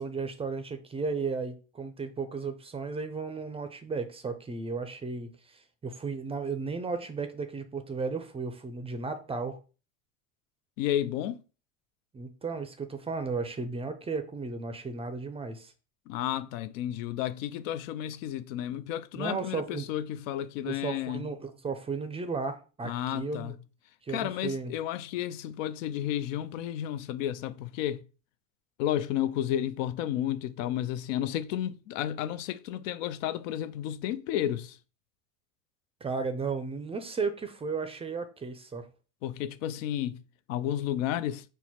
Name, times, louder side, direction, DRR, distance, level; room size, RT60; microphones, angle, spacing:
voice 1, 0.0-9.6 12.1-15.7 19.2-19.9 20.6-23.5 24.0-24.7 36.0-38.9, right 4 dB, 15° right, 0.4 m, -34 dB
voice 2, 10.8-11.4 16.1-21.3 22.8-23.5 24.1-28.0 28.8-34.8 39.2-40.2 40.5-41.4, left 11 dB, 80° left, 0.5 m, -32 dB
4.5 x 2.2 x 4.2 m
supercardioid pair, 105°, 38 cm